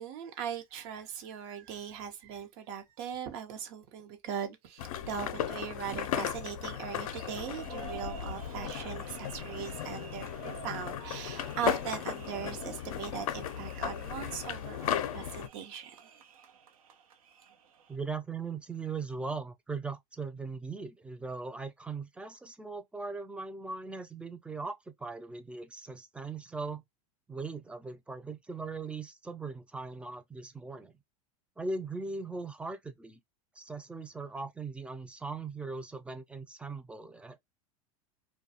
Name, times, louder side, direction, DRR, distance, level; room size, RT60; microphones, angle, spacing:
voice 1, 0.0-15.9, right 8 dB, 55° right, 0.8 m, -39 dB
sound 1, 4.8-15.5, left 10 dB, 80° left, 0.5 m, -36 dB
sound 2, 6.9-18.0, right 6 dB, 85° right, 0.8 m, -51 dB
voice 2, 17.9-26.8 27.3-30.9 31.6-33.2 33.6-37.6, right 4 dB, 5° right, 0.4 m, -39 dB
2.3 x 2.2 x 2.7 m
hypercardioid pair, 110°, 18 cm